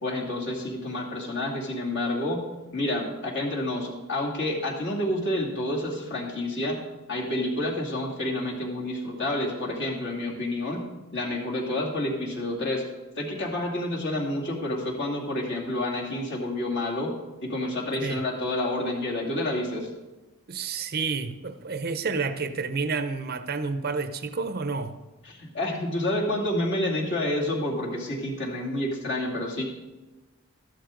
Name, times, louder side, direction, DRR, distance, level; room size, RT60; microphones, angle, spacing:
voice 1, 0.0-2.5 2.7-6.8 7.1-10.8 11.1-12.8 13.2-17.1 17.4-19.9 25.2-29.6, left 1 dB, 55° left, -2 dB, 2.5 m, -29 dB
voice 2, 20.5-25.0, right 4 dB, 45° right, 10 dB, 0.6 m, -30 dB
13.5 x 11.5 x 3.8 m, 1.1 s
head